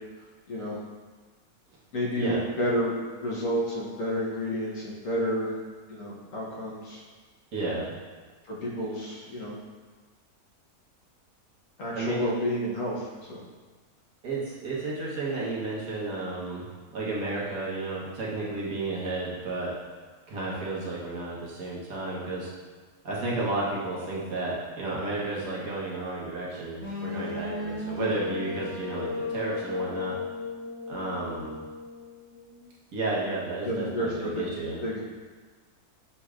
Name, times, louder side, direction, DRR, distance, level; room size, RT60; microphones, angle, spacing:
voice 1, 0.5-0.8 1.9-2.9 3.2-5.5 5.9-7.0 8.5-9.6 11.8-13.4 28.0-28.1 33.6-34.5 34.8-35.0, equal, 60° left, -5 dB, 1.2 m, -30 dB
voice 2, 7.5-7.9 12.0-12.3 14.2-16.7 16.9-19.7 20.3-22.5 23.0-30.1 30.9-31.6 32.9-34.8, right 2 dB, 65° right, -6 dB, 1.4 m, -32 dB
sound 1, 26.8-32.7, left 3 dB, 10° left, 1.1 m, -35 dB
7.1 x 3.1 x 2.4 m, 1.4 s
omnidirectional pair, 1.6 m